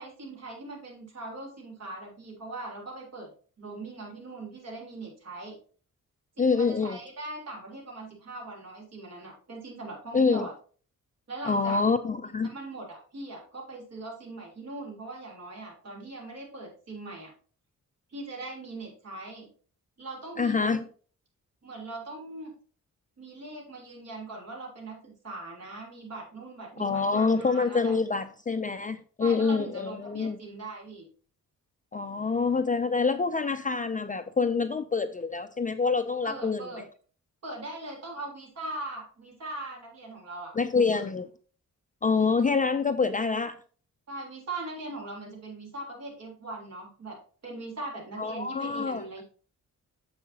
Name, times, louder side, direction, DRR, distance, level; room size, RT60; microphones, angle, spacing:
voice 1, 0.0-3.3 3.6-5.6 6.4-10.5 11.3-11.8 12.4-17.3 18.1-19.5 20.0-20.7 21.6-22.5 23.2-28.0 29.2-31.1 36.2-36.8 37.4-40.5 40.9-41.1 44.1-47.2 47.4-49.2, right 2 dB, 50° right, -1 dB, 3.6 m, -40 dB
voice 2, 6.4-7.0 10.1-10.5 11.4-12.5 20.4-20.8 26.8-30.4 31.9-36.6 40.6-41.3 42.0-43.6 48.2-49.2, left 4 dB, 25° left, 9 dB, 0.4 m, -26 dB
9.5 x 7.2 x 2.8 m, 0.41 s
wide cardioid pair, 175°, 32 cm